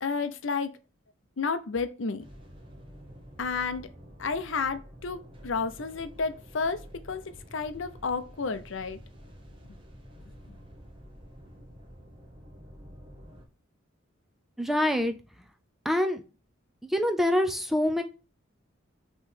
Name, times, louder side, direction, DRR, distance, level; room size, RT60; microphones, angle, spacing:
voice 1, 0.0-0.8 1.4-2.2 3.4-3.9 4.2-7.2 7.5-9.0, left 4 dB, 65° left, 0.6 m, -31 dB
sound 1, 2.2-13.5, equal, 25° right, 1.2 m, -49 dB
voice 2, 14.6-15.1 15.8-16.2 16.9-18.0, left 1 dB, ahead, 0.5 m, -25 dB
6.1 x 3.1 x 5.6 m
head